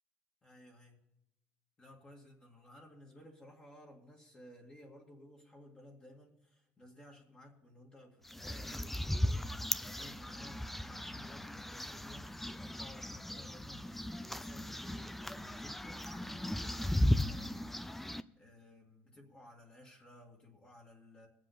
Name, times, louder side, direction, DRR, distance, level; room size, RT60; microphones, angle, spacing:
voice 1, 0.4-1.0 1.8-21.3, left 1 dB, 20° left, 0 dB, 2.1 m, -57 dB
sound 1, 8.3-18.2, left 1 dB, 5° left, 0.4 m, -36 dB
22.0 x 7.5 x 4.0 m, 0.90 s
cardioid pair, 140°, 5 cm